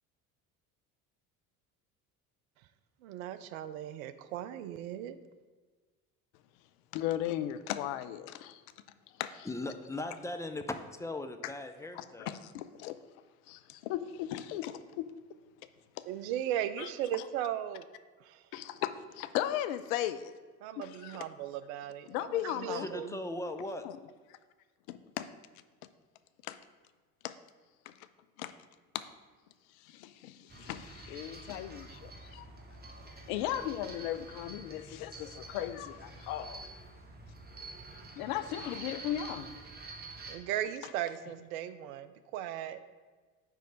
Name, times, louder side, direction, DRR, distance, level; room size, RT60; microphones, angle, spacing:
voice 1, 3.0-5.2 16.1-17.8 18.2-18.4 20.6-23.2 40.3-42.8, right 11 dB, 70° right, 0.6 m, -37 dB
voice 2, 6.9-8.6 9.2-9.5 11.4-11.5 11.9-13.0 13.5-15.1 16.8-17.3 18.5-20.3 20.8-21.3 22.1-22.9 23.8-24.0 24.9-25.3 26.4-26.6 27.2-27.3 27.9-28.0 28.4-28.5 28.9-29.1 29.8-32.4 33.3-36.7 38.2-39.6, left 12 dB, 65° left, 0.6 m, -37 dB
voice 3, 9.5-12.4 22.8-23.8, left 2 dB, 10° left, 0.3 m, -38 dB
sound 1, 30.5-40.3, right 3 dB, 20° right, 1.0 m, -48 dB
9.1 x 3.2 x 5.1 m
hypercardioid pair, 65°, 45 cm